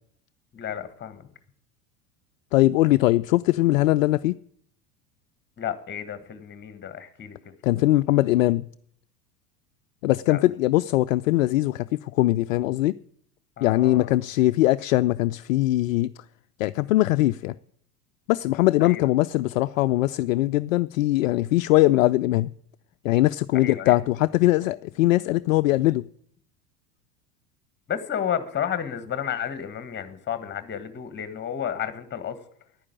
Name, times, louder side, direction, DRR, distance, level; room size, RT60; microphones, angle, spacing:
voice 1, 0.5-1.3 5.6-7.4 10.3-10.4 13.6-14.1 18.8-19.0 23.6-24.0 27.9-32.4, left 9 dB, 25° left, 1.7 m, -31 dB
voice 2, 2.5-4.4 7.6-8.6 10.0-12.9 13.6-16.1 16.6-17.5 18.3-22.5 23.0-26.1, left 17 dB, 60° left, 0.5 m, -21 dB
11.0 x 9.6 x 8.7 m
figure-of-eight pair, 80°, 46 cm